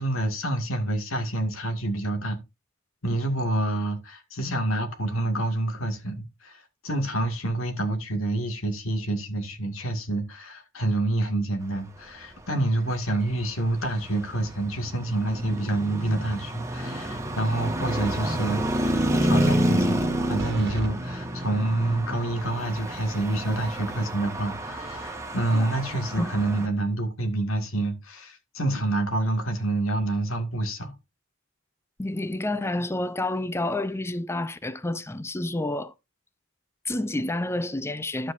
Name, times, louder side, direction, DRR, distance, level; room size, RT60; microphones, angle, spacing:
voice 1, 0.0-2.4 3.0-19.0 19.3-20.0 20.3-30.9, right 2 dB, 85° left, 2.2 m, -27 dB
Traffic noise roadway noise, 13.0-26.7, right 1 dB, 15° right, 1.6 m, -29 dB
sound 1, 20.4-20.9, right 1 dB, 55° right, 1.6 m, -36 dB
voice 2, 32.0-35.9 36.8-38.3, left 1 dB, 15° left, 0.6 m, -29 dB
11.5 x 7.8 x 2.6 m
head